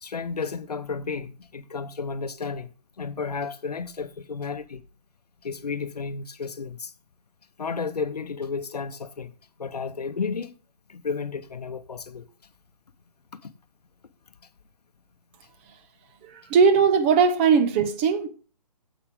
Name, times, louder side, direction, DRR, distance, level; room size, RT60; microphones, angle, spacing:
voice 1, 0.0-2.7 3.0-4.8 5.4-6.9 7.6-9.3 9.6-10.5 10.9-12.3 13.4-13.5, left 5 dB, 70° left, 0.8 m, -32 dB
voice 2, 16.2-18.3, right 6 dB, 20° right, 0.6 m, -19 dB
9.8 x 7.6 x 3.6 m
figure-of-eight pair, 135°, 21 cm